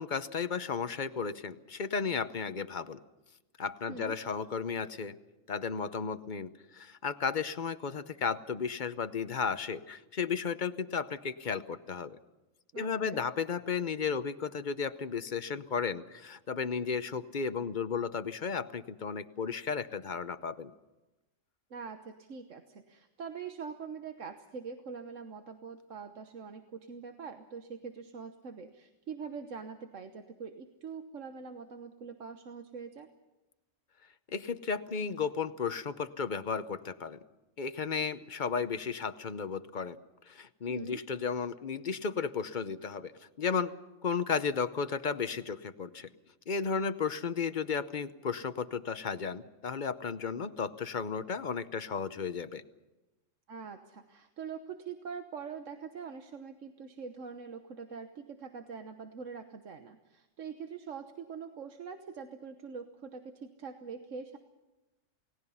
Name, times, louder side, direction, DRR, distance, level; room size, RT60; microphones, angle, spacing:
voice 1, 0.0-3.0 3.6-5.1 5.5-12.2 12.8-20.7 34.3-37.2 37.6-40.0 40.3-43.1 43.4-43.7 44.0-46.1 46.5-52.6, left 6 dB, 45° left, 13 dB, 0.9 m, -34 dB
voice 2, 3.9-4.2 12.7-13.2 21.7-33.1 40.7-41.0 53.5-64.4, right 6 dB, 70° right, 6 dB, 1.5 m, -44 dB
29.0 x 19.0 x 5.7 m, 1.0 s
omnidirectional pair, 1.3 m